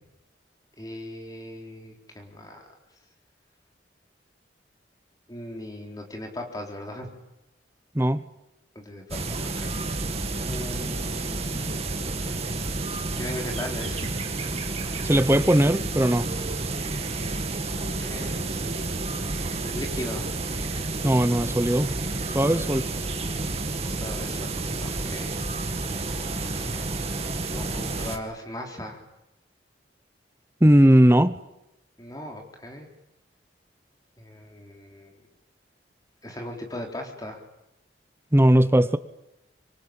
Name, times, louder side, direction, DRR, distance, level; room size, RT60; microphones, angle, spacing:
voice 1, 0.8-2.7 5.3-7.1 8.8-9.8 10.1-12.0 13.2-14.1 17.7-18.7 19.6-20.3 22.5-22.7 23.8-25.4 26.3-26.8 27.5-29.0 32.0-32.9 34.2-35.2 36.2-37.4, left 1 dB, 20° left, 2 dB, 3.9 m, -38 dB
voice 2, 7.9-8.3 15.0-16.3 21.0-21.9 22.3-22.8 30.6-31.4 38.3-39.0, right 1 dB, 15° right, 12 dB, 0.9 m, -18 dB
sound 1, 9.1-28.2, right 2 dB, 35° right, 2.1 m, -30 dB
25.0 x 22.5 x 8.9 m, 0.89 s
head